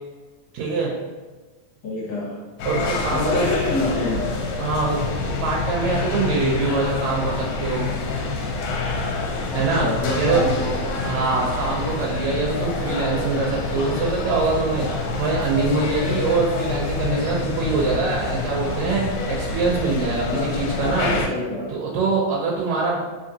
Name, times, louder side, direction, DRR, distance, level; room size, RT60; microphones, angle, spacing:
voice 1, 0.5-0.9 2.7-3.4 4.6-5.0 5.2-7.9 9.5-9.9 10.1-21.1 21.7-23.0, right 4 dB, 80° right, -3 dB, 1.9 m, -24 dB
voice 2, 1.8-2.5 3.1-4.2 9.5-10.8 20.2-21.7, left 1 dB, 60° left, -6 dB, 1.2 m, -27 dB
sound 1, 2.6-21.3, left 3 dB, 80° left, 1.7 m, -27 dB
4.0 x 3.7 x 2.7 m, 1.3 s
omnidirectional pair, 3.4 m